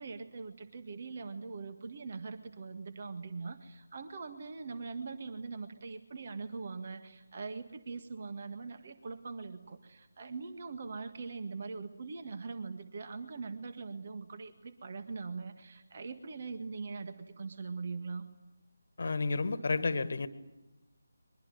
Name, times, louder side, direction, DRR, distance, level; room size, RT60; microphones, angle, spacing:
voice 1, 0.0-18.2, right 4 dB, 40° right, 1.7 m, -42 dB
voice 2, 19.0-20.3, left 3 dB, 50° left, 1.6 m, -31 dB
23.5 x 23.0 x 9.2 m
figure-of-eight pair, 155°, 0 cm